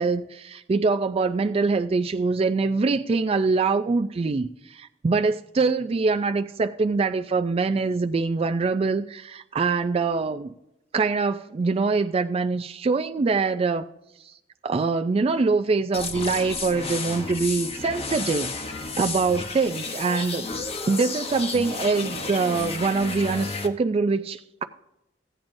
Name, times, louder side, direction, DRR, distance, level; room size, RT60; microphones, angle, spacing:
voice 1, 0.0-10.5 10.9-13.9 14.2-14.3 14.6-20.5 20.9-24.6, right 4 dB, 35° right, 0.3 m, -24 dB
sound 1, 15.9-23.7, left 3 dB, 35° left, 0.9 m, -32 dB
16.0 x 8.8 x 2.6 m
head